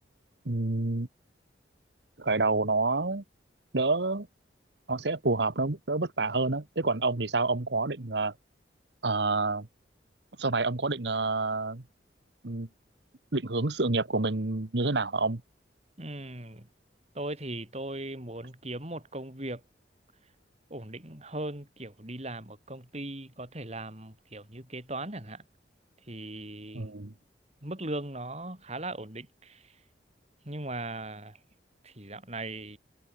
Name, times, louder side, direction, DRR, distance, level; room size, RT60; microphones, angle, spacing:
voice 1, 0.4-1.1 2.2-3.2 3.7-4.3 4.9-8.3 9.0-9.7 10.4-11.8 12.4-12.7 13.3-15.4 26.7-27.1, right 3 dB, 70° right, 1.5 m, -28 dB
voice 2, 16.0-16.7 17.1-19.6 20.7-25.4 26.1-26.9 27.6-29.6 30.4-31.4 31.8-32.8, right 2 dB, 35° right, 4.9 m, -38 dB
head